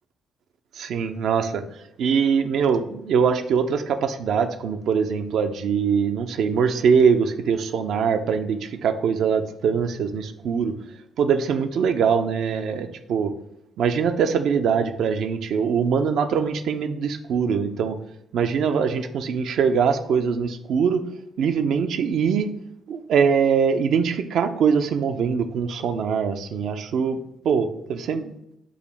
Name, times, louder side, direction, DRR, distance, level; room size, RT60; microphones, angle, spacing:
voice 1, 0.8-1.6 2.0-10.7 11.2-13.3 13.8-18.0 18.3-21.0 21.4-22.5 22.9-27.2 27.4-28.3, right 6 dB, 60° right, 7 dB, 0.4 m, -22 dB
6.2 x 2.6 x 3.1 m, 0.79 s
figure-of-eight pair, 45°, 0 cm